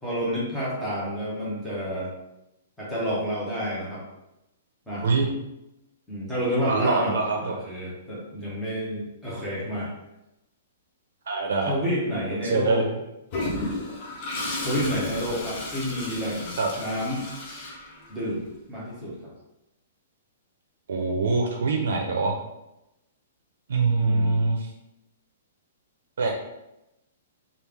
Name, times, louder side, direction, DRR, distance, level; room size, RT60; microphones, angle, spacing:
voice 1, 0.0-2.1 2.8-4.0 4.9-5.0 6.1-9.9 11.7-12.9 14.6-17.3 18.1-19.1 24.0-24.4, equal, ahead, -8 dB, 0.9 m, -29 dB
voice 2, 6.7-7.5 11.3-11.7 12.4-12.9 16.6-16.7 20.9-22.4 23.7-24.7 26.2-26.3, right 3 dB, 75° right, 1 dB, 0.6 m, -24 dB
Toilet flush, 13.3-18.4, left 2 dB, 30° left, 0.6 m, -33 dB
3.1 x 2.4 x 3.4 m, 0.90 s
hypercardioid pair, 175°, 0 cm